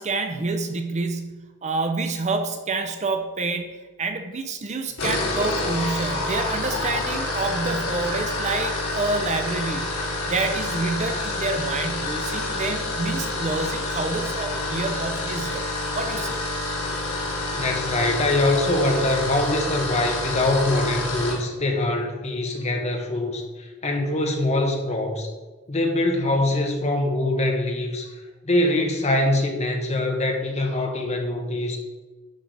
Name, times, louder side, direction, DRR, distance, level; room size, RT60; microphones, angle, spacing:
voice 1, 0.0-9.9 10.3-15.6 16.0-16.4, right 3 dB, 30° right, 6 dB, 0.6 m, -28 dB
sound 1, 4.9-21.4, left 2 dB, 75° left, 2.8 m, -28 dB
voice 2, 17.5-25.3 25.7-28.1 28.4-31.8, left 2 dB, 30° left, 2 dB, 1.4 m, -23 dB
11.0 x 6.3 x 4.0 m, 1.3 s
head